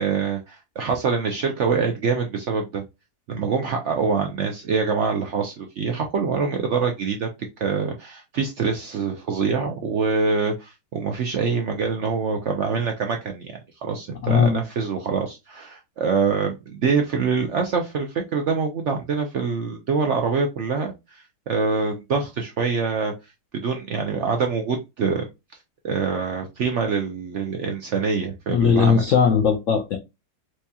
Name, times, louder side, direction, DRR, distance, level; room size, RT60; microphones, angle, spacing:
voice 1, 0.0-2.8 3.3-7.3 7.6-13.5 13.8-23.1 23.5-25.3 25.8-29.1, right 5 dB, 75° right, 0.6 m, -25 dB
voice 2, 14.2-14.6 28.5-30.0, left 6 dB, 70° left, 0.7 m, -18 dB
4.6 x 2.8 x 2.2 m
omnidirectional pair, 1.9 m